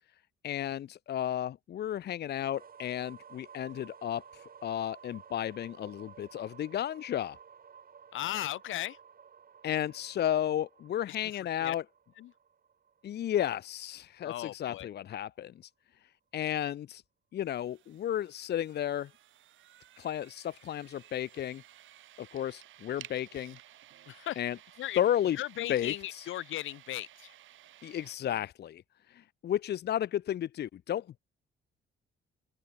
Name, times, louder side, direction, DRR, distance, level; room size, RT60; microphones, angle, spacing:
voice 1, 0.4-7.4 9.6-11.8 13.0-15.5 16.3-17.0 17.3-19.1 20.0-21.6 22.2-23.6 24.4-24.6 25.0-25.4 25.7-26.3 27.8-28.8 29.1-31.2, left 11 dB, 55° left, 0.7 m, -33 dB
sound 1, 2.5-14.3, right 7 dB, 45° right, 4.2 m, -55 dB
voice 2, 8.1-9.0 11.1-11.2 11.6-11.7 12.2-12.3 14.2-14.9 24.1-24.4 24.8-25.0 25.4-27.3, left 14 dB, 80° left, 1.4 m, -37 dB
sound 2, 17.4-28.2, right 13 dB, 80° right, 5.1 m, -56 dB
open air
cardioid pair, 90°, 20 cm